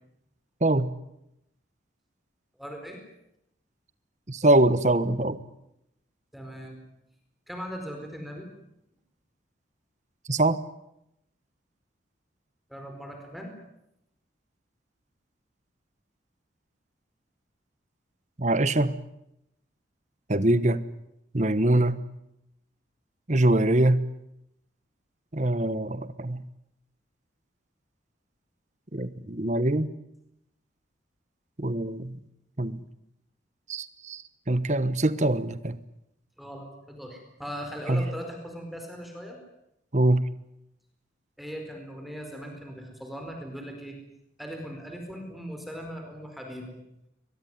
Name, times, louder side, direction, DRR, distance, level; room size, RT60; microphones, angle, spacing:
voice 1, 2.6-3.0 6.3-6.8 7.5-8.5 12.7-13.5 36.4-39.4 41.4-44.0 44.4-46.8, equal, ahead, 3 dB, 4.6 m, -39 dB
voice 2, 4.3-5.4 10.3-10.6 18.4-18.9 20.3-20.8 21.3-22.0 23.3-24.0 25.3-26.4 28.9-29.9 31.6-32.2 32.6-32.8 33.7-35.8 37.9-38.0 39.9-40.2, right 1 dB, 40° right, 14 dB, 1.2 m, -23 dB
23.0 x 22.0 x 9.5 m, 0.82 s
head